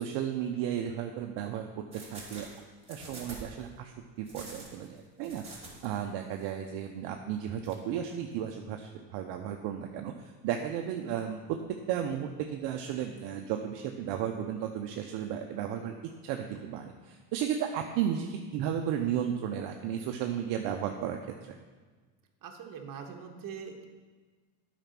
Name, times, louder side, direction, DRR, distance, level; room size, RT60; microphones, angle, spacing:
voice 1, 0.0-2.5 2.9-11.6 11.9-15.9 16.2-21.2 21.5-21.6, right 9 dB, 60° right, 3 dB, 0.8 m, -34 dB
sound 1, 1.9-3.6 4.3-6.0 6.3-6.5 7.7-7.8, right 2 dB, 10° right, 3.1 m, -46 dB
voice 2, 22.4-23.9, right 6 dB, 45° right, 2 dB, 1.4 m, -42 dB
8.9 x 5.1 x 5.9 m, 1.4 s
supercardioid pair, 95°, 48 cm